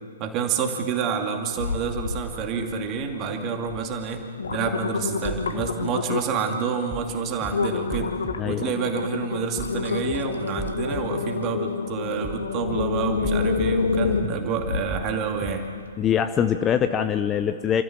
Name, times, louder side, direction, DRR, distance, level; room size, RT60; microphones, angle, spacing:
voice 1, 0.2-4.2 4.5-8.1 8.4-15.6, right 6 dB, 25° right, 3 dB, 2.5 m, -28 dB
sound 1, 1.6-2.2 2.6-3.1 3.7-3.8 4.2-6.4 6.9-7.1 7.5-15.0 15.5-15.6, left 5 dB, 65° left, 1.6 m, -28 dB
sound 2, 5.2-5.7 6.9-7.1 7.4-7.5 7.9-8.3 9.6-9.8 10.1-10.2 10.6-11.0 12.2-12.5 12.7-12.8 13.2-13.7 14.9-15.1 15.4-15.5, right 4 dB, 5° right, 1.4 m, -36 dB
voice 2, 16.0-17.8, left 8 dB, 20° left, 9 dB, 0.6 m, -23 dB
29.5 x 14.0 x 7.4 m, 2.2 s
figure-of-eight pair, 120°, 0 cm